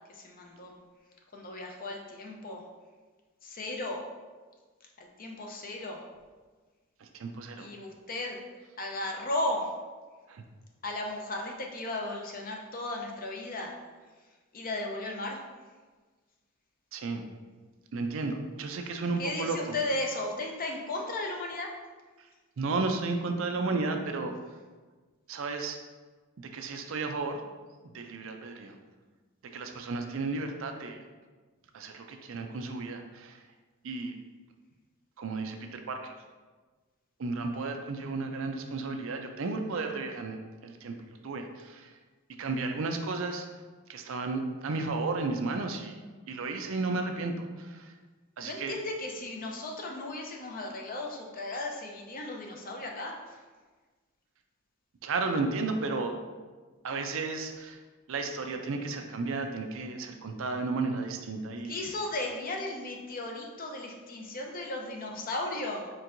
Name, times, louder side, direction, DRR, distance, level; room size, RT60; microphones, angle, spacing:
voice 1, 0.1-0.7 1.3-2.6 3.4-4.0 5.0-6.0 7.6-8.4 8.8-9.7 10.8-13.7 14.5-15.4 19.2-21.7 48.4-53.4 61.7-65.9, left 2 dB, 40° left, 1 dB, 0.6 m, -35 dB
voice 2, 7.0-7.7 10.3-10.4 16.9-17.3 17.9-19.8 22.2-22.3 22.6-24.4 25.3-25.8 26.4-27.4 27.9-28.8 29.4-31.0 31.7-33.4 33.8-34.1 35.2-36.1 37.2-41.9 42.4-43.5 43.9-46.0 46.3-47.9 48.4-48.8 55.0-56.1 56.8-57.8 58.1-61.7, right 3 dB, 65° right, 5 dB, 0.4 m, -33 dB
4.5 x 4.4 x 2.6 m, 1.4 s
head